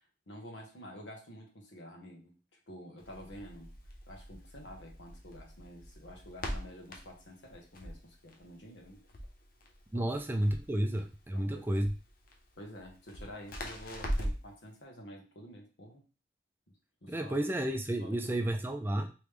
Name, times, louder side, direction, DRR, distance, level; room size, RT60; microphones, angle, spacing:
voice 1, 0.0-2.4 2.7-3.7 4.1-9.0 9.9-10.1 10.7-10.9 11.3-11.9 12.6-16.0 17.0-17.5 18.0-18.4, equal, 85° left, 0 dB, 1.1 m, -49 dB
Crackle, 3.0-14.5, equal, 55° left, 0.8 m, -42 dB
voice 2, 9.9-11.9 17.1-19.1, right 1 dB, 10° right, 5 dB, 0.3 m, -31 dB
3.3 x 3.0 x 3.3 m, 0.34 s
head